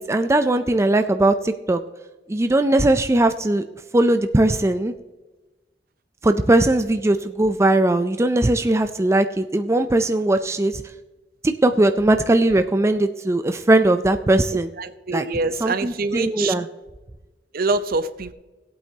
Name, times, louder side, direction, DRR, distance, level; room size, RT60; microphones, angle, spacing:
voice 1, 0.0-1.8 2.3-3.6 3.9-4.9 6.2-10.8 11.4-14.7 15.1-15.2 15.6-16.7, right 1 dB, 15° right, 8 dB, 0.4 m, -19 dB
voice 2, 14.5-16.5 17.5-18.3, right 3 dB, 55° right, 12 dB, 0.6 m, -25 dB
18.5 x 8.6 x 2.8 m, 1.1 s
head